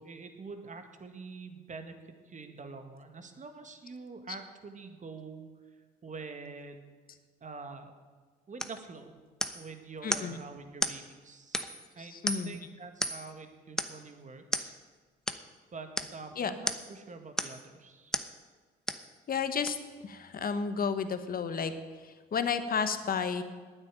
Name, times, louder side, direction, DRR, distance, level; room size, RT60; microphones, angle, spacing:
voice 1, 0.0-5.5 5.8-6.8 7.4-7.9 8.5-9.1 9.5-11.7 12.0-12.2 12.4-14.7 15.7-18.2, right 4 dB, 40° right, 7 dB, 1.9 m, -46 dB
sound 1, 8.6-8.8 9.4-9.7 10.1-10.3 10.8-11.0 11.5-11.9 12.3-12.6 13.0-13.3 13.8-14.0 14.5-14.7 15.3-15.4 16.0-16.2 16.7-16.9 17.4-17.7 18.1-18.3 18.9-19.1 19.7-19.8, equal, 5° left, 0.9 m, -33 dB
voice 2, 10.0-10.4 12.1-12.5 16.4-16.5 19.3-19.8 20.0-21.7 22.3-23.4, left 6 dB, 45° left, 10 dB, 1.3 m, -31 dB
9.8 x 9.3 x 9.1 m, 1.4 s
supercardioid pair, 65°, 20 cm